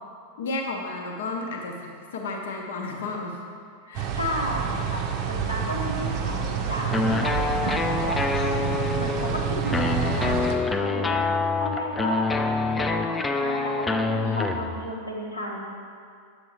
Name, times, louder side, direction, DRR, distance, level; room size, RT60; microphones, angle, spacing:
voice 1, 0.4-3.4 3.9-4.1 14.1-14.5, left 3 dB, 60° left, 1 dB, 0.8 m, -33 dB
sound 1, 3.9-10.5, right 7 dB, 40° right, 0.6 m, -28 dB
voice 2, 4.1-8.2 9.0-10.4 10.8-11.2 11.5-12.2 12.6-15.6, equal, 85° left, -3 dB, 1.0 m, -33 dB
sound 2, 6.9-14.9, left 3 dB, 15° left, 0.4 m, -26 dB
7.9 x 6.6 x 3.0 m, 2.3 s
figure-of-eight pair, 90°, 0 cm